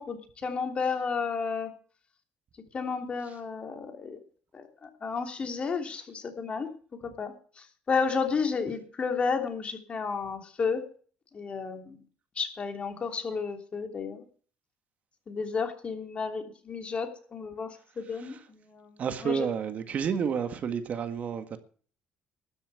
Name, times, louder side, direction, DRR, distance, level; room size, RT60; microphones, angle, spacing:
voice 1, 0.0-1.7 2.7-4.2 4.5-6.7 7.0-10.9 11.3-12.0 12.3-14.2 15.3-19.5, left 5 dB, 40° left, 3.1 m, -32 dB
voice 2, 19.0-21.6, right 7 dB, 50° right, 1.8 m, -31 dB
13.0 x 7.2 x 8.4 m
supercardioid pair, 85°, 3 cm